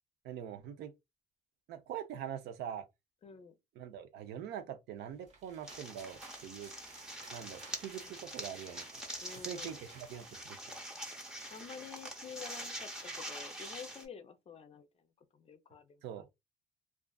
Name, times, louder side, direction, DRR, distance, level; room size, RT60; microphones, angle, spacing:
voice 1, 0.2-0.9 1.7-2.9 3.8-6.7 7.3-9.0 9.4-10.7 16.0-16.2, right 9 dB, 80° right, 0.6 m, -43 dB
voice 2, 3.2-3.5 7.7-8.1 9.2-9.8 11.5-14.9 15.3-16.0, left 6 dB, 35° left, 0.5 m, -49 dB
sound 1, 5.1-10.4, right 4 dB, 40° right, 1.0 m, -57 dB
sound 2, 5.7-14.1, right 1 dB, 5° right, 0.7 m, -45 dB
2.4 x 2.4 x 2.3 m
cardioid pair, 110°, 17 cm